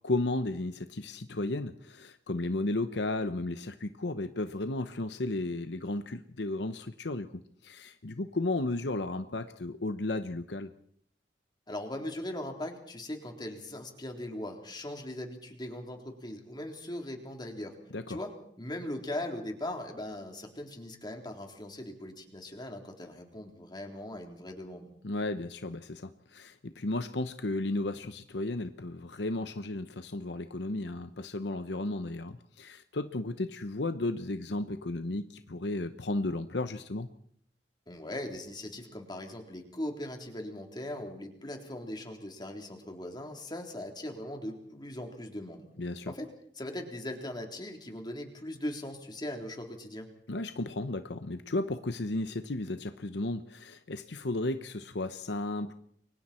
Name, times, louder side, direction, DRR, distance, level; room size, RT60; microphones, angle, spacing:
voice 1, 0.0-10.7 17.9-18.2 25.0-37.1 45.8-46.1 50.3-55.7, left 2 dB, 70° left, 10 dB, 0.9 m, -34 dB
voice 2, 11.7-17.8 18.1-24.9 37.9-45.6 46.1-46.3 46.6-50.1, left 1 dB, 25° left, 3 dB, 3.6 m, -39 dB
29.0 x 24.0 x 4.4 m, 0.64 s
head